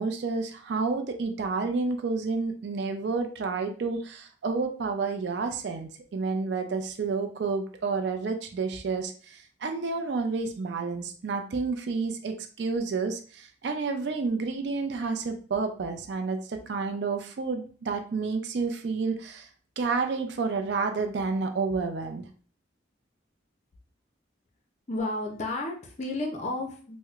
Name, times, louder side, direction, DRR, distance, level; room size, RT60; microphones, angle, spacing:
voice 1, 0.0-19.5 19.8-22.3, right 4 dB, 65° right, 5 dB, 0.4 m, -30 dB
voice 2, 24.9-27.0, left 2 dB, 35° left, 3 dB, 0.5 m, -32 dB
4.5 x 2.0 x 2.4 m, 0.41 s
head